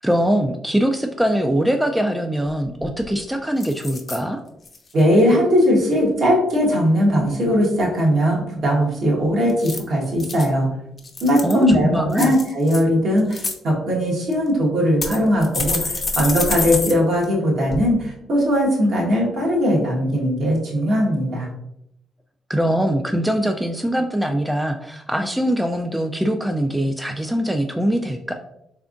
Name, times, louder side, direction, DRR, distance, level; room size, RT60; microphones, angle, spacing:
voice 1, 0.0-4.4 11.4-12.3 22.5-28.3, equal, 5° right, 4 dB, 0.3 m, -22 dB
sound 1, 2.5-2.6 2.8-3.2 3.6-4.2 4.6-5.0 9.5-10.5 11.0-11.6 12.1-12.8 13.2-13.5 14.3-14.4 15.0-16.9 17.2-17.3 17.7-17.8, left 3 dB, 35° left, 0.6 m, -27 dB
voice 2, 4.9-10.7 11.2-21.5, equal, 65° right, -3 dB, 1.4 m, -19 dB
3.5 x 3.4 x 2.5 m, 0.79 s
cardioid pair, 90°, 0 cm